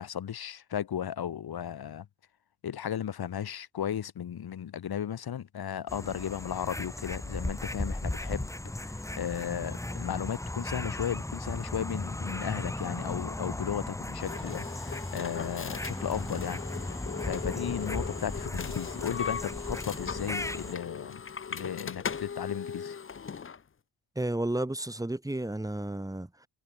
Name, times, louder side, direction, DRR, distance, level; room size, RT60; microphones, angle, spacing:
voice 1, 0.0-2.1 2.6-8.5 8.8-21.2 21.5-23.0, left 9 dB, 60° left, 3.4 m, -35 dB
sound 1, 5.9-20.7, left 1 dB, 5° left, 1.8 m, -36 dB
sound 2, 14.2-23.6, left 6 dB, 30° left, 1.2 m, -38 dB
voice 2, 24.1-26.5, right 1 dB, 10° right, 3.0 m, -32 dB
wide cardioid pair, 170°, 41 cm